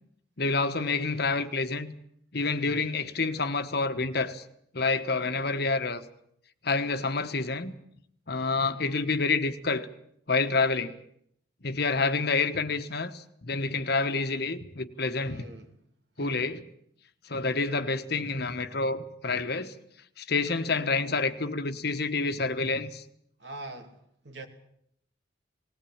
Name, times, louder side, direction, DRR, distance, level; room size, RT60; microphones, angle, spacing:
voice 1, 0.4-1.9 2.3-4.4 4.7-6.0 6.6-7.7 8.3-9.9 10.3-11.0 11.6-15.4 16.2-16.6 17.2-19.7 20.2-23.0, left 3 dB, 60° left, 10 dB, 1.3 m, -28 dB
voice 2, 15.2-15.7 16.2-16.5 23.4-24.5, right 2 dB, 65° right, 5 dB, 2.7 m, -43 dB
19.5 x 18.5 x 8.8 m, 0.70 s
head